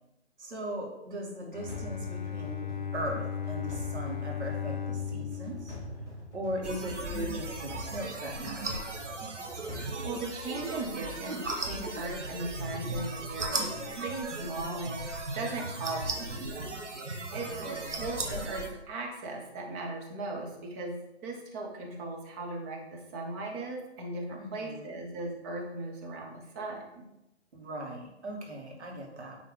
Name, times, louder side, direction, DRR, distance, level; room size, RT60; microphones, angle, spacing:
voice 1, 0.4-5.8 6.3-9.1 17.4-18.3 24.4-25.0 27.5-29.4, right 1 dB, 70° right, -1 dB, 2.3 m, -39 dB
Bowed string instrument, 1.5-6.8, left 8 dB, 45° left, 0.5 m, -37 dB
sound 1, 1.7-10.9, right 1 dB, 10° left, 1.5 m, -45 dB
sound 2, 6.6-18.7, right 2 dB, 85° right, 1.4 m, -37 dB
voice 2, 9.6-27.1, right 2 dB, 15° right, 0 dB, 0.7 m, -38 dB
9.1 x 3.7 x 3.9 m, 0.91 s
figure-of-eight pair, 145°, 35 cm